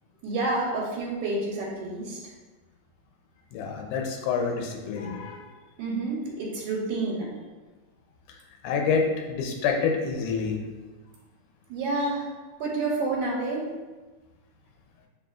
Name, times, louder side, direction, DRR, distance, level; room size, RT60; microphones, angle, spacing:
voice 1, 0.2-2.2 5.8-7.3 11.7-12.3 12.6-13.7, right 2 dB, 85° right, -4 dB, 2.1 m, -29 dB
voice 2, 3.5-5.4 8.6-10.6, left 5 dB, 90° left, 2 dB, 2.2 m, -27 dB
6.3 x 3.3 x 2.4 m, 1.2 s
omnidirectional pair, 3.5 m